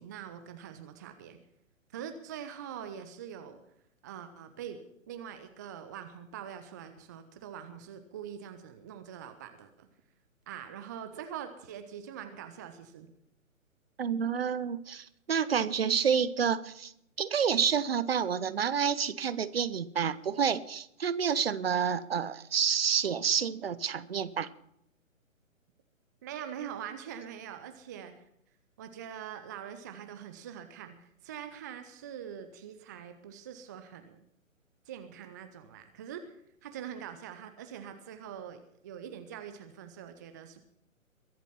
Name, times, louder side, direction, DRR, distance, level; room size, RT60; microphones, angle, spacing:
voice 1, 0.0-1.4 1.9-3.6 4.0-4.8 5.1-9.9 10.5-13.1 26.2-28.2 28.8-34.2 34.9-36.4 36.6-40.6, right 9 dB, 15° right, 8 dB, 0.6 m, -43 dB
voice 2, 14.0-16.9 17.2-24.5, right 7 dB, 45° right, 16 dB, 1.0 m, -29 dB
22.5 x 8.2 x 5.8 m, 0.75 s
figure-of-eight pair, 130°, 40 cm